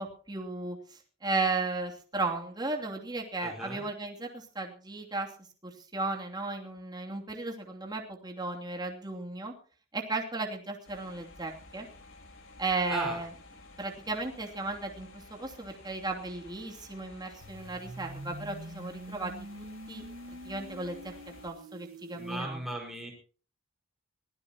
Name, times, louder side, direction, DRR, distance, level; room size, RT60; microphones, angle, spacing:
voice 1, 0.0-5.3 5.6-9.5 9.9-11.9 12.6-13.3 13.8-19.3 19.6-20.0 20.4-21.0 21.3-22.6, right 3 dB, 20° right, 1 dB, 2.7 m, -35 dB
voice 2, 3.4-3.8 12.9-13.2 22.1-23.1, right 1 dB, ahead, 0 dB, 4.9 m, -37 dB
sound 1, 10.8-21.5, left 2 dB, 65° left, 4.3 m, -53 dB
sound 2, 17.4-22.4, right 1 dB, 70° right, 1.6 m, -45 dB
23.5 x 15.5 x 2.9 m, 0.41 s
head